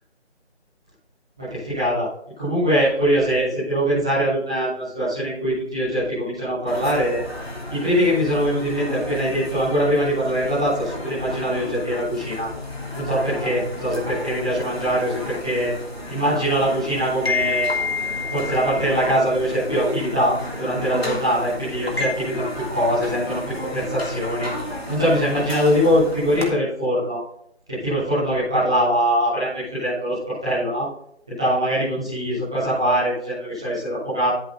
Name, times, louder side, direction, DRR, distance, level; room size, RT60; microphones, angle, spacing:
voice 1, 1.4-2.1 2.4-7.2 7.7-12.5 12.9-15.7 16.1-17.7 18.3-24.5 24.9-27.2 27.7-30.9 31.3-34.3, equal, 5° right, -14 dB, 1.2 m, -22 dB
sound 1, 6.7-26.5, left 2 dB, 60° left, 3.2 m, -31 dB
13.5 x 6.3 x 4.1 m, 0.70 s
figure-of-eight pair, 165°, 34 cm